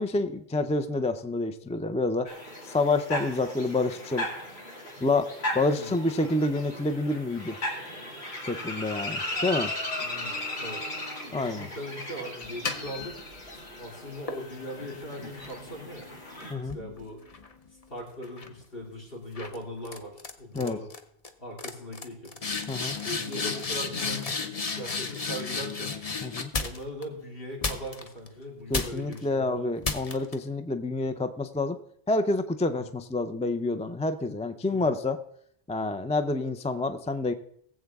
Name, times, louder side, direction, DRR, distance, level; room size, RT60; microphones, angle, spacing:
voice 1, 0.0-2.3 2.6-4.3 5.0-7.6 8.5-9.7 11.3-11.7 16.5-16.8 20.5-20.8 22.7-23.0 26.2-26.5 28.7-31.8 32.1-35.2 35.7-37.3, left 2 dB, 10° left, 8 dB, 0.3 m, -28 dB
sound 1, 2.3-16.5, left 1 dB, 80° left, 2.7 m, -37 dB
voice 2, 10.0-10.8 11.3-13.2 13.8-16.1 16.5-17.2 17.9-20.9 21.4-22.3 23.0-25.9 26.6-29.8 32.7-32.9 34.7-34.9, equal, 60° left, 0 dB, 3.3 m, -40 dB
sound 2, 12.4-13.7 14.3-17.8 18.2-18.6 19.4-19.6 19.8-20.3 20.6-21.0 21.2-21.3 21.6-27.0 27.6-28.3 28.7-29.2 29.8-30.3, left 4 dB, 40° left, 0.9 m, -34 dB
20.5 x 7.8 x 3.5 m, 0.70 s
omnidirectional pair, 1.1 m